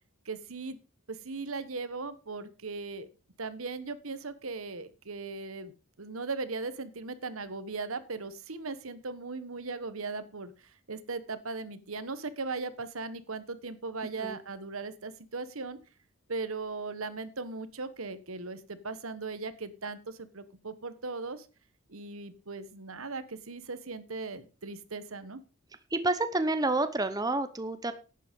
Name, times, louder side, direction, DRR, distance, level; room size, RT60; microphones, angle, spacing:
voice 1, 0.2-0.8 1.1-3.1 3.4-5.7 6.0-10.5 10.9-15.8 16.3-21.5 21.9-25.4, right 3 dB, 75° right, 13 dB, 1.3 m, -38 dB
voice 2, 25.9-27.9, right 2 dB, 20° right, 10 dB, 0.9 m, -29 dB
11.5 x 9.2 x 5.3 m, 0.34 s
head